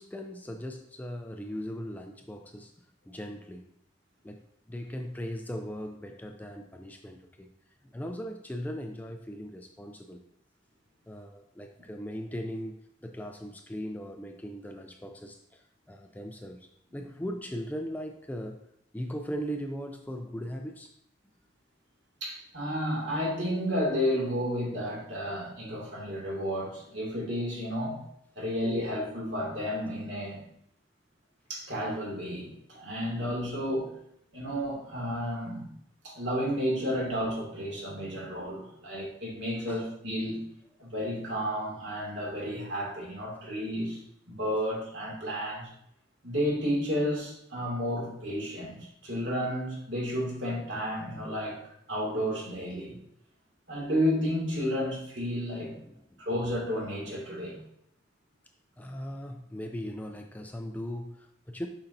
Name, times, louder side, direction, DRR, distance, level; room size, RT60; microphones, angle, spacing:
voice 1, 0.0-2.7 3.1-3.7 4.2-7.5 7.9-10.2 11.1-18.7 18.9-20.9 39.7-39.9 55.8-56.2 58.8-61.7, equal, 10° left, 4 dB, 0.4 m, -39 dB
voice 2, 22.2-28.0 28.4-30.4 31.5-33.9 34.3-35.7 36.0-40.4 40.8-44.0 44.3-45.7 46.2-51.6 51.9-52.9 53.7-55.7 56.2-57.5, equal, 65° right, -4 dB, 2.4 m, -32 dB
7.0 x 5.4 x 2.7 m, 0.73 s
head